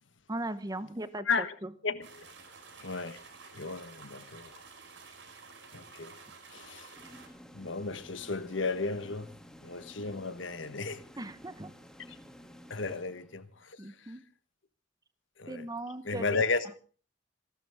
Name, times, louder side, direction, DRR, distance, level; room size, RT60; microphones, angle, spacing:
voice 1, 0.3-1.7 11.2-11.7 13.8-14.2 15.5-16.4, right 1 dB, 20° right, 1.0 m, -38 dB
voice 2, 1.8-2.2 2.8-3.2 3.5-4.5 5.7-6.1 6.5-6.9 7.5-9.3 9.6-11.0 12.1-12.2 12.7-14.1 15.4-15.7 16.0-16.8, left 4 dB, 85° left, 1.4 m, -34 dB
sound 1, 2.0-7.3, right 4 dB, 80° right, 4.5 m, -51 dB
sound 2, 7.0-13.7, equal, 5° left, 1.8 m, -53 dB
27.5 x 12.0 x 3.6 m
head